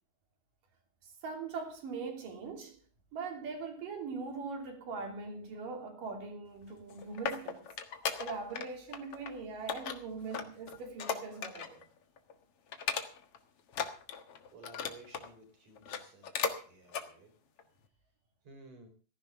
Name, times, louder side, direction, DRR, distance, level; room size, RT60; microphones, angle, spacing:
voice 1, 1.0-2.8 3.1-7.7 8.2-11.8, right 4 dB, 70° right, 4.6 m, -41 dB
sound 1, 6.7-8.7 8.9-9.3 9.7-11.8 12.2-12.3 12.7-13.4 13.7-15.3 15.8-16.6 16.9-17.1 17.6-17.7, left 7 dB, 55° left, 2.0 m, -37 dB
voice 2, 14.5-16.3 16.6-17.3 18.4-18.9, right 4 dB, 50° right, 5.4 m, -54 dB
16.5 x 14.5 x 3.7 m
omnidirectional pair, 4.0 m